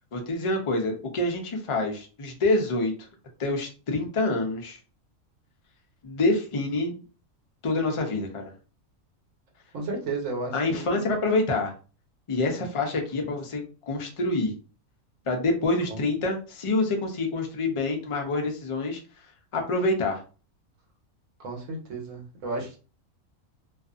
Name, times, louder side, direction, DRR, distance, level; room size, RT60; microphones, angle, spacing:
voice 1, 0.1-2.9 3.4-4.8 6.0-7.0 7.6-8.5 10.5-11.7 12.3-14.5 15.3-19.0 19.5-20.2, left 2 dB, 55° left, 3 dB, 0.3 m, -26 dB
voice 2, 9.7-11.0 15.9-16.0 21.4-22.8, right 3 dB, 70° right, 1 dB, 1.2 m, -33 dB
2.5 x 2.4 x 2.4 m, 0.36 s
omnidirectional pair, 1.4 m